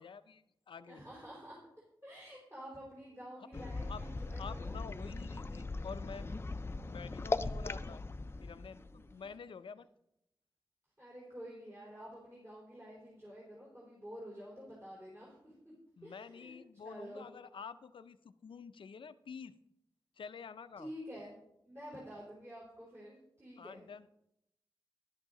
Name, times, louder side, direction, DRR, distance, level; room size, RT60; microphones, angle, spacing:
voice 1, 0.0-1.0 3.4-3.5 3.9-4.0 4.4-6.3 6.9-8.0 8.4-9.9 16.0-19.5 20.2-20.9 23.6-24.1, left 6 dB, 80° left, 12 dB, 0.5 m, -49 dB
voice 2, 0.9-1.6 2.0-4.8 8.7-9.3 11.0-15.7 16.0-17.3 20.8-21.3 21.7-23.8, equal, 30° right, -6 dB, 3.8 m, -49 dB
sound 1, 3.5-9.3, left 3 dB, 30° left, 0.4 m, -39 dB
11.0 x 11.0 x 3.8 m, 0.80 s
wide cardioid pair, 120°, 8 cm